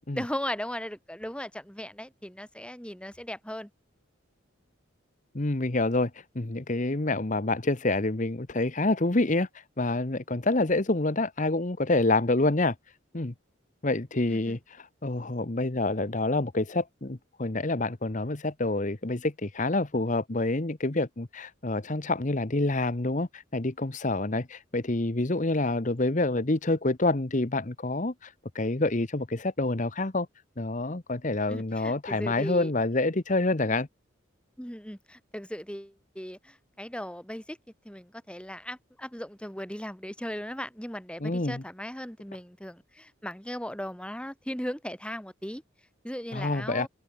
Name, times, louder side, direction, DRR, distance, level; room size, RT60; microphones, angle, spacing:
voice 1, 0.2-3.7 14.3-14.6 31.5-32.7 34.6-37.6 37.8-45.6 46.0-46.9, equal, 5° left, 4.3 m, -37 dB
voice 2, 5.3-13.3 13.8-30.3 30.6-33.9 41.2-41.6 46.3-46.9, left 2 dB, 35° left, 1.1 m, -27 dB
open air
head